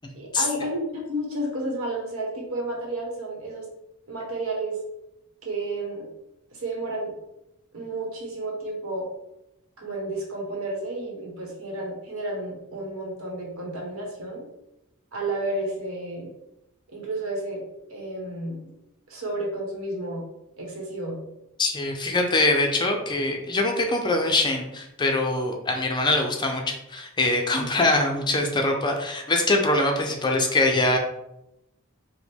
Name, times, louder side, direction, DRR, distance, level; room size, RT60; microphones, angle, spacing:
voice 1, 0.1-3.7 4.1-4.8 5.4-6.1 6.5-7.1 7.7-9.1 9.8-14.4 15.1-16.3 16.9-17.6 17.9-18.7 19.1-20.2 20.6-21.2 27.5-27.8, right 1 dB, 75° right, -2 dB, 1.2 m, -31 dB
voice 2, 21.6-31.0, left 2 dB, 20° left, 3 dB, 0.5 m, -23 dB
4.9 x 2.1 x 3.5 m, 0.88 s
head